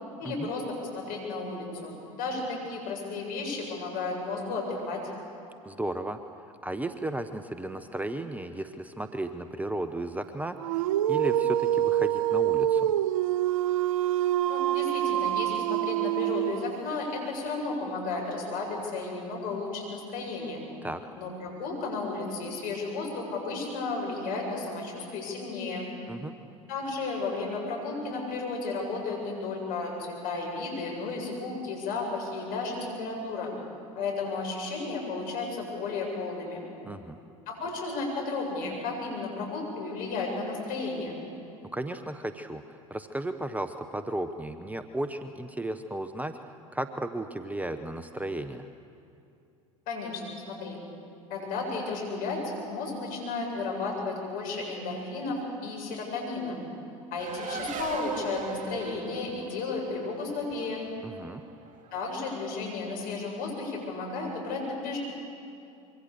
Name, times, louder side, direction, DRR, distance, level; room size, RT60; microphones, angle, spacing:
voice 1, 0.2-5.0 14.5-20.6 21.1-25.9 26.7-33.5 34.0-36.6 37.5-41.2 49.9-50.8 51.3-52.4 52.7-56.6 57.1-60.8 61.9-65.0, left 3 dB, 55° left, -1 dB, 7.9 m, -33 dB
voice 2, 5.6-6.2 6.6-12.9 20.8-21.0 26.1-26.3 36.8-37.2 41.7-46.4 46.7-48.7 61.0-61.4, right 1 dB, 10° right, 9 dB, 1.0 m, -34 dB
Dog, 10.6-16.9, right 12 dB, 75° right, 0.5 m, -26 dB
Race car auto racing, 57.2-62.1, right 6 dB, 45° right, 2.2 m, -39 dB
25.5 x 24.0 x 6.9 m, 2.6 s
hypercardioid pair, 75°, 18 cm